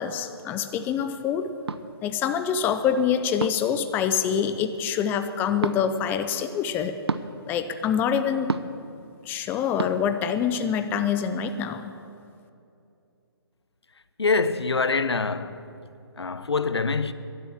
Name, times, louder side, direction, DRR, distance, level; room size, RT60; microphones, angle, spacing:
voice 1, 0.0-1.5 2.0-7.0 7.5-8.5 9.3-11.9, left 8 dB, 15° left, 0.5 m, -25 dB
sound 1, 1.7-1.8 3.4-3.7 5.6-5.8 7.1-7.3 8.5-8.8 9.8-9.9, right 4 dB, 85° right, 0.7 m, -28 dB
voice 2, 14.2-15.6 16.2-17.1, left 4 dB, 85° left, 0.8 m, -25 dB
14.5 x 11.0 x 7.4 m
figure-of-eight pair, 140°, 13 cm